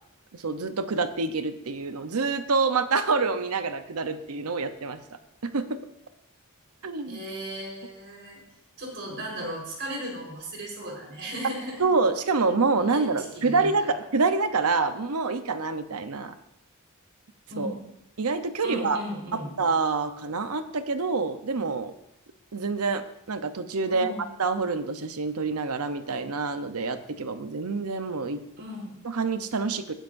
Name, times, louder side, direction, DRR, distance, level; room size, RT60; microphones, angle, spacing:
voice 1, 0.3-5.8 6.8-7.2 11.8-16.3 17.6-17.7 18.2-19.0 19.3-21.9 22.5-24.1 24.4-28.4 29.0-29.9, right 4 dB, 85° right, 10 dB, 0.8 m, -27 dB
voice 2, 7.1-8.4 8.8-11.9 12.9-13.7 17.5-17.8 18.6-19.6 23.9-24.3 28.6-29.0, equal, 55° right, -1 dB, 4.5 m, -36 dB
19.5 x 10.0 x 2.6 m, 0.83 s
head